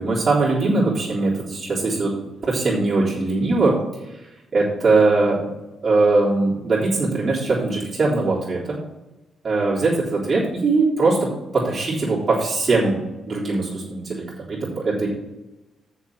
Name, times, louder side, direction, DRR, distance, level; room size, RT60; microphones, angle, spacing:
voice 1, 0.0-2.1 2.4-3.8 4.5-5.5 5.8-8.8 9.4-13.0 13.3-15.1, right 3 dB, 45° right, -7 dB, 3.5 m, -21 dB
7.1 x 6.4 x 7.7 m, 1.0 s
hypercardioid pair, 45°, 0 cm